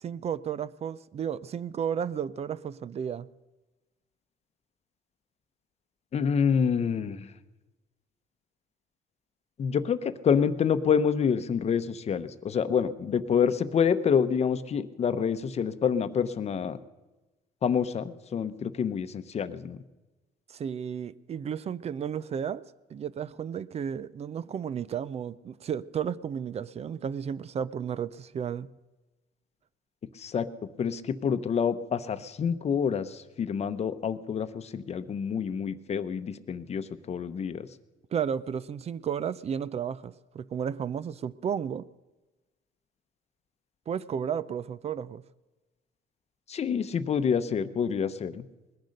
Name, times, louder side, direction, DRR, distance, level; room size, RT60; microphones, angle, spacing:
voice 1, 0.0-3.3 20.5-28.7 38.1-41.9 43.9-45.2, right 8 dB, 40° right, 0.5 m, -33 dB
voice 2, 6.1-7.3 9.6-16.8 17.6-19.8 30.2-30.5 30.8-37.7 46.5-48.4, left 7 dB, 40° left, 0.8 m, -27 dB
19.5 x 10.5 x 6.5 m
cardioid pair, 110°, 17 cm